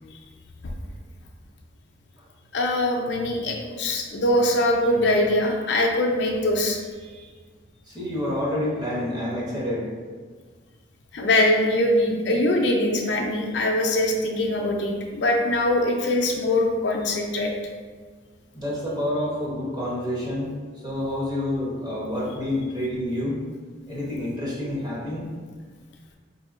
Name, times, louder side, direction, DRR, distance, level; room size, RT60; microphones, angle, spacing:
voice 1, 2.5-6.8 11.1-17.5, left 1 dB, 60° left, 1 dB, 0.4 m, -22 dB
voice 2, 7.9-9.9 18.5-20.5 20.8-23.4 23.9-25.3, left 1 dB, 20° right, -6 dB, 0.8 m, -28 dB
4.3 x 2.7 x 2.5 m, 1.5 s
head